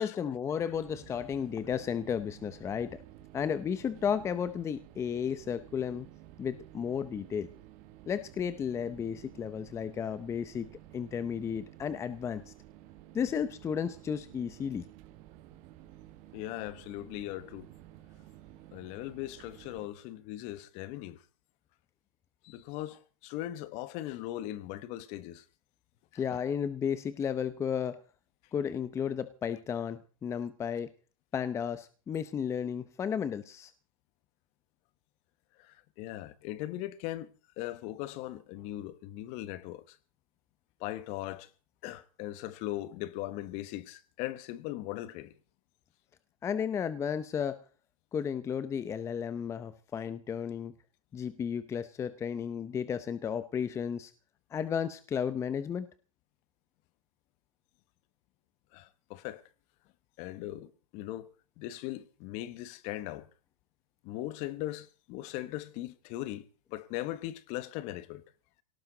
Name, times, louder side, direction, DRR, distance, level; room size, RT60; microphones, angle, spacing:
voice 1, 0.0-3.0 3.3-6.1 6.4-7.5 8.1-10.7 10.9-12.5 13.1-14.9 26.1-28.0 28.5-30.9 31.3-33.7 46.4-47.6 48.1-50.7 51.1-54.1 54.5-55.9, left 7 dB, 15° left, 0.7 m, -33 dB
sound 1, 0.7-19.9, right 13 dB, 40° right, 1.8 m, -53 dB
voice 2, 16.3-17.7 18.7-21.2 22.4-25.4 26.1-26.4 35.6-37.3 37.6-40.0 40.8-41.5 41.8-45.3 58.7-59.4 60.2-63.3 64.0-66.4 66.7-68.2, left 15 dB, 40° left, 1.2 m, -39 dB
19.0 x 18.0 x 4.0 m
supercardioid pair, 150°, 17 cm